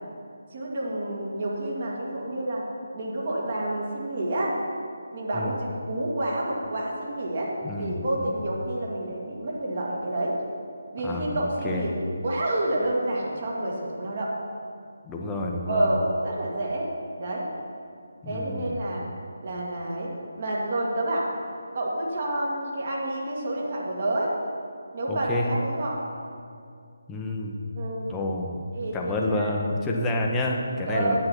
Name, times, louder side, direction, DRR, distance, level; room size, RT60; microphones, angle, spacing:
voice 1, 0.5-2.7 2.9-4.6 5.1-7.5 7.8-10.4 10.9-12.0 12.2-14.3 15.7-16.9 17.2-17.5 18.3-19.0 19.4-21.3 21.7-24.3 24.9-26.0 27.7-28.1 28.7-29.5 30.9-31.2, right 1 dB, 40° right, -3 dB, 2.0 m, -29 dB
voice 2, 7.6-8.3 11.0-11.8 15.1-15.9 18.2-18.7 25.1-25.5 27.1-27.5 28.0-28.6 28.9-31.2, left 1 dB, 10° left, -1 dB, 0.9 m, -29 dB
8.9 x 7.5 x 6.0 m, 2.3 s
figure-of-eight pair, 150°, 0 cm